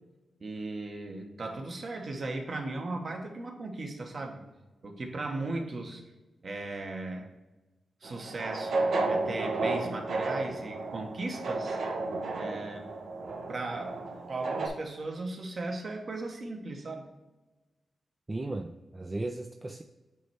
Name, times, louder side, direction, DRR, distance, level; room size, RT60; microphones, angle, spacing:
voice 1, 0.4-4.4 4.8-6.0 6.4-7.3 8.0-11.8 12.3-13.0 13.3-14.0 14.3-17.1, right 2 dB, 45° right, 3 dB, 1.1 m, -37 dB
sound 1, 8.0-14.7, right 3 dB, 75° right, 1.0 m, -32 dB
voice 2, 18.3-19.8, right 2 dB, 20° right, 5 dB, 0.3 m, -36 dB
8.1 x 3.2 x 4.5 m, 1.1 s
wide cardioid pair, 140°, 0 cm